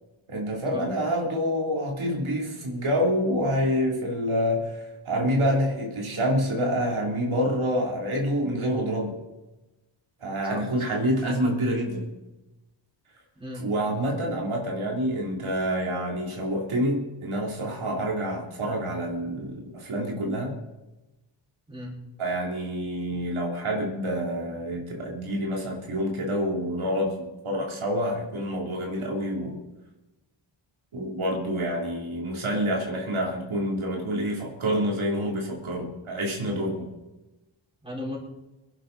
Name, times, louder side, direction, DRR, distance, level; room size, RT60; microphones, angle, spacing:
voice 1, 0.3-4.8 5.0-9.2 10.2-12.1 13.6-20.5 22.2-29.6 30.9-36.9, equal, 80° right, -2 dB, 3.2 m, -27 dB
voice 2, 10.5-11.0 13.3-13.7 21.7-22.0 37.8-38.2, left 1 dB, 10° right, -5 dB, 4.9 m, -37 dB
24.5 x 11.0 x 4.0 m, 1.1 s
wide cardioid pair, 135°, 48 cm